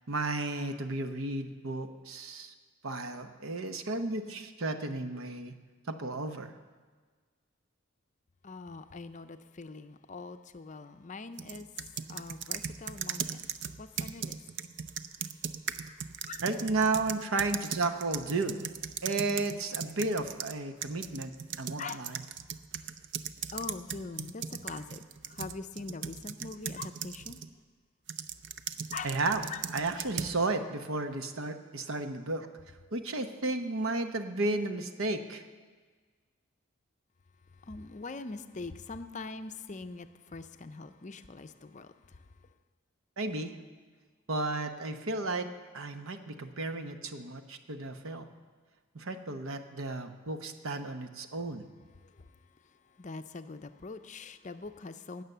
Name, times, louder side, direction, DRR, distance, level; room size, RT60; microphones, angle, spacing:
voice 1, 0.1-2.5 2.8-5.5 5.9-6.5 16.4-18.6 19.0-22.2 29.0-29.4 29.7-32.5 32.9-35.4 43.2-43.5 44.3-45.5 45.7-48.3 48.9-51.7, right 3 dB, 75° right, 7 dB, 0.9 m, -33 dB
voice 2, 8.4-14.4 15.9-16.0 16.3-16.4 17.3-17.4 21.8-22.0 23.5-27.4 28.9-29.1 29.5-29.6 37.6-42.3 52.0-52.4 53.0-55.2, left 3 dB, 35° left, 10 dB, 0.5 m, -43 dB
sound 1, 11.4-20.5 20.8-27.5 28.1-30.4, right 7 dB, 55° right, 0.5 m, -38 dB
18.5 x 6.8 x 6.8 m, 1.5 s
head